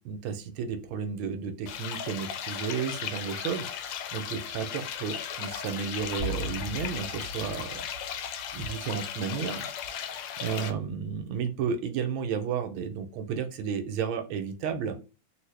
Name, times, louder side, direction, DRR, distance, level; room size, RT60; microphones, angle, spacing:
voice 1, 0.0-7.7 8.5-14.9, right 6 dB, 75° right, 7 dB, 1.4 m, -33 dB
sound 1, 1.7-10.7, left 8 dB, 75° left, 1.1 m, -36 dB
sound 2, 6.2-9.1, equal, 20° left, 1.0 m, -39 dB
3.4 x 2.6 x 3.1 m, 0.33 s
omnidirectional pair, 2.4 m